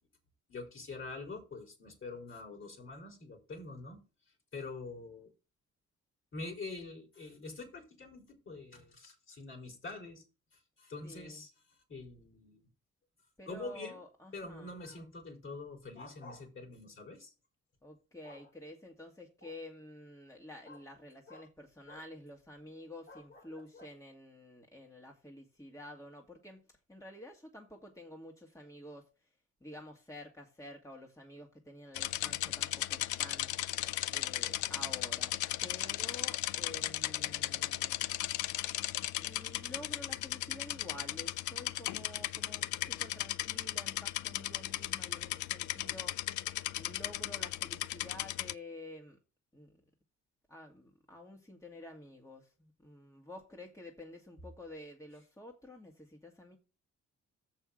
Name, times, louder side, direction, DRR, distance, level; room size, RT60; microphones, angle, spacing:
voice 1, 0.5-4.0 4.5-5.3 6.3-10.2 10.8-11.5 11.9-12.7 13.5-14.0 14.3-17.3 18.2-18.4 19.4-19.5 20.7-20.8 21.3-21.5 21.9-22.0 23.1-23.4 23.7-23.9, left 3 dB, 40° left, 3.8 m, -45 dB
voice 2, 11.0-11.4 13.4-14.7 17.8-29.3 29.6-33.5 34.1-35.3 35.6-38.0 39.2-46.2 46.7-49.2 49.5-49.8 50.5-56.6, left 1 dB, 10° left, 1.7 m, -50 dB
sound 1, 31.9-48.5, left 15 dB, 75° left, 0.5 m, -36 dB
7.1 x 5.6 x 6.3 m
cardioid pair, 90°, 30 cm